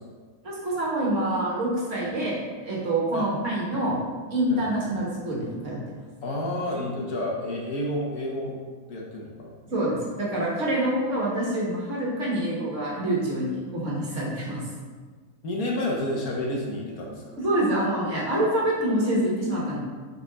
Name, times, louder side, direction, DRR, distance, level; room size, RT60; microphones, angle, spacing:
voice 1, 0.4-4.0 4.3-5.8 9.7-14.6 17.4-19.8, right 1 dB, 45° right, -5 dB, 1.8 m, -26 dB
voice 2, 6.2-8.6 8.9-9.5 15.4-17.4, left 1 dB, 60° left, -1 dB, 1.4 m, -30 dB
6.9 x 4.3 x 4.0 m, 1.5 s
omnidirectional pair, 1.8 m